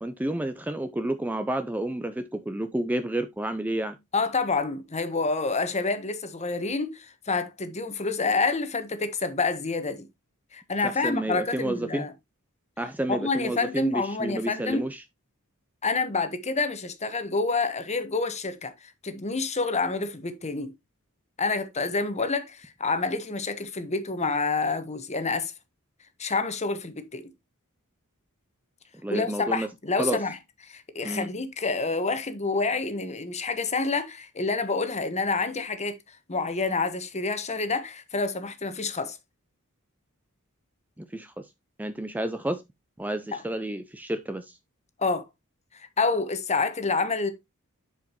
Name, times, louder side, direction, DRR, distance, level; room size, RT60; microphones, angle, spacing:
voice 1, 0.0-4.0 10.8-12.1 12.8-15.0 29.0-29.7 30.0-30.2 31.0-31.3 41.0-41.5 41.8-42.6 43.0-44.6, right 1 dB, 5° right, 0.4 m, -30 dB
voice 2, 4.1-10.1 10.5-12.1 13.1-14.8 15.8-18.7 19.0-20.7 21.4-25.5 26.2-27.2 29.1-30.4 30.7-36.0 36.3-39.2 43.3-43.4 45.0-45.2 45.7-47.3, left 3 dB, 30° left, 1.1 m, -28 dB
10.5 x 5.0 x 2.9 m
head